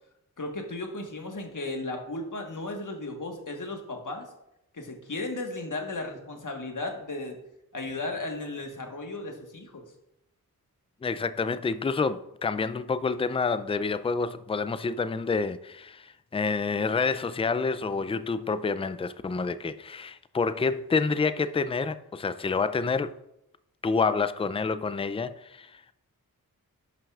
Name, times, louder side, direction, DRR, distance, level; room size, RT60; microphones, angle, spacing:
voice 1, 0.4-4.3 4.7-7.4 7.7-9.8, left 2 dB, 60° left, 1.4 m, -35 dB
voice 2, 11.0-23.1 23.8-25.9, left 4 dB, 15° left, 0.4 m, -28 dB
11.0 x 5.7 x 2.4 m
cardioid pair, 45°, 36 cm